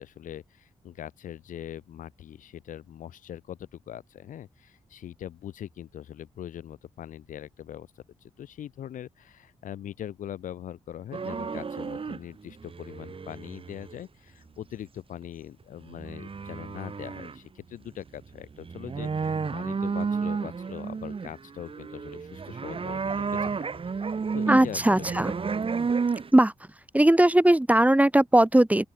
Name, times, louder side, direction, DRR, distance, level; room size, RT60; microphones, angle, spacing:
voice 1, 0.0-7.9 8.2-23.7 24.0-25.2, left 10 dB, 85° left, 6.6 m, -41 dB
sound 1, 11.1-12.2 12.5-14.0 15.2-15.3 15.9-17.4 17.7-17.8 18.1-26.3, right 5 dB, 45° right, 1.3 m, -32 dB
voice 2, 24.5-25.3 26.3-26.5 26.9-28.8, right 1 dB, 10° right, 2.1 m, -19 dB
open air
cardioid pair, 55°, 13 cm